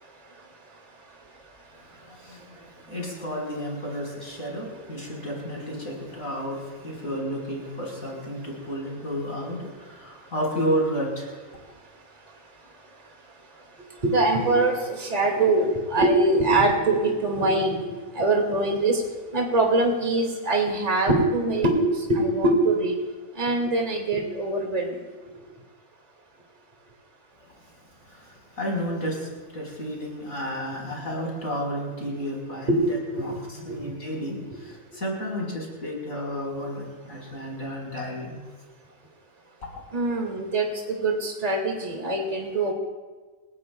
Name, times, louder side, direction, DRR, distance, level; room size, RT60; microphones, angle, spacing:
voice 1, 2.1-11.4 28.1-33.4 33.6-38.4, equal, 75° left, -2 dB, 4.8 m, -32 dB
voice 2, 14.0-17.8 18.2-19.0 19.3-22.9 23.4-25.0 32.7-32.8 33.1-33.3 33.7-33.9 39.9-42.7, right 2 dB, 30° right, 0 dB, 2.1 m, -23 dB
29.5 x 17.5 x 2.2 m, 1.3 s
omnidirectional pair, 1.4 m